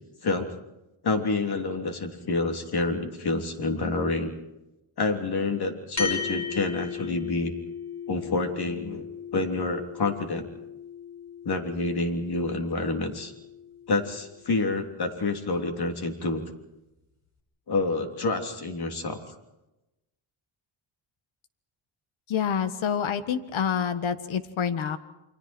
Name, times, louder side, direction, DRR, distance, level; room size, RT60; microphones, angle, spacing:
voice 1, 0.2-0.5 1.0-4.3 5.0-7.5 8.1-9.1 9.3-10.5 11.4-13.3 13.9-16.4 17.7-19.2, left 3 dB, 50° left, 5 dB, 3.4 m, -28 dB
sound 1, 6.0-14.6, left 6 dB, 30° left, 5.6 m, -37 dB
voice 2, 22.3-25.0, left 7 dB, 70° left, 11 dB, 1.8 m, -27 dB
29.0 x 25.0 x 4.5 m, 0.96 s
cardioid pair, 115°, 49 cm